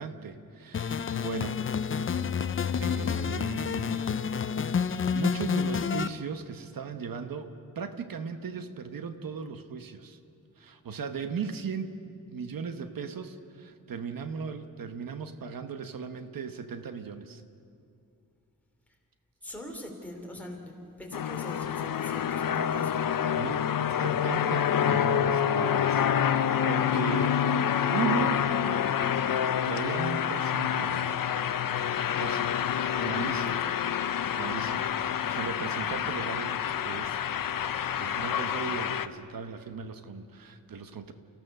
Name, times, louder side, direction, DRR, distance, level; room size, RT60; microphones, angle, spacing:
voice 1, 0.0-1.6 2.8-4.1 5.0-10.2 10.6-11.9 12.3-17.4 23.4-27.6 27.9-28.4 29.6-31.3 32.2-32.6 33.0-33.6 34.1-37.2 38.0-41.1, right 6 dB, 85° right, 8 dB, 1.1 m, -37 dB
sound 1, 0.7-6.1, left 6 dB, 40° left, 0.5 m, -29 dB
voice 2, 19.4-23.0 25.6-26.0 33.6-33.7, left 1 dB, 5° left, 0 dB, 3.0 m, -43 dB
sound 2, 21.1-39.1, left 9 dB, 80° left, 0.7 m, -27 dB
30.0 x 16.0 x 6.7 m, 2.6 s
wide cardioid pair, 175°, 33 cm